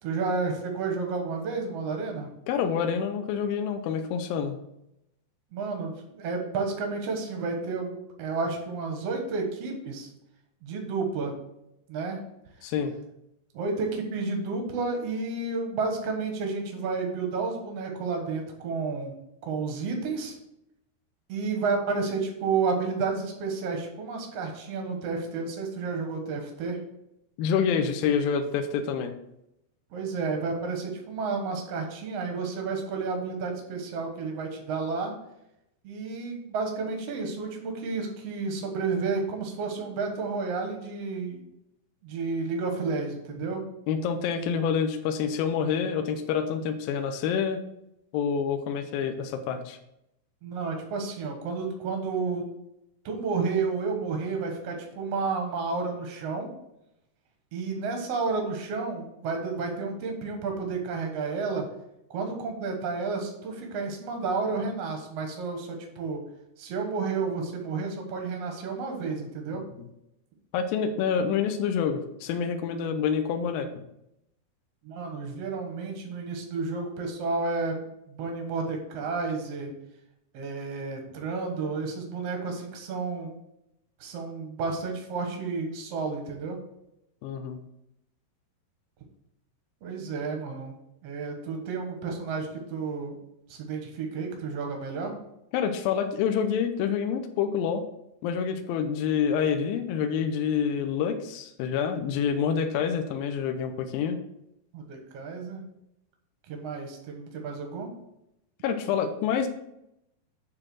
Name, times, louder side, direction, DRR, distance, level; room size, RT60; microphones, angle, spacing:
voice 1, 0.0-2.3 5.5-10.1 10.6-11.3 11.9-12.2 13.5-19.1 19.4-20.3 21.3-26.8 29.9-35.1 35.8-41.4 42.0-43.6 50.4-52.5 53.0-56.5 57.5-61.6 62.1-66.2 66.6-69.6 74.8-79.7 80.3-83.3 84.0-86.6 89.8-90.8 91.0-93.2 93.5-95.1 104.7-105.6 106.5-107.9, right 4 dB, 70° right, 2 dB, 1.5 m, -31 dB
voice 2, 2.5-4.6 12.6-12.9 27.4-29.1 43.9-47.6 48.1-49.8 70.5-73.7 87.2-87.6 95.5-97.8 98.2-104.2 108.6-109.5, left 7 dB, 80° left, 6 dB, 2.1 m, -27 dB
8.9 x 3.9 x 6.2 m, 0.83 s
omnidirectional pair, 4.9 m